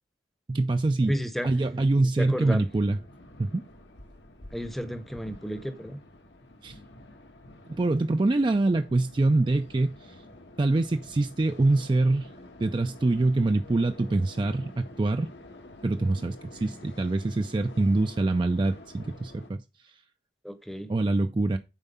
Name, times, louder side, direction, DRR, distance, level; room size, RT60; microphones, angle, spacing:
voice 1, 0.5-1.2 1.4-3.0 3.4-3.6 6.6-6.8 7.7-10.2 10.6-12.3 12.6-15.3 15.8-20.0 20.9-21.6, right 2 dB, 25° right, 0.3 m, -25 dB
voice 2, 1.1-1.5 2.2-2.6 4.5-6.0 20.4-20.9, equal, ahead, 0.7 m, -32 dB
sound 1, 2.4-19.5, left 1 dB, 80° left, 1.5 m, -49 dB
7.3 x 4.6 x 5.5 m
head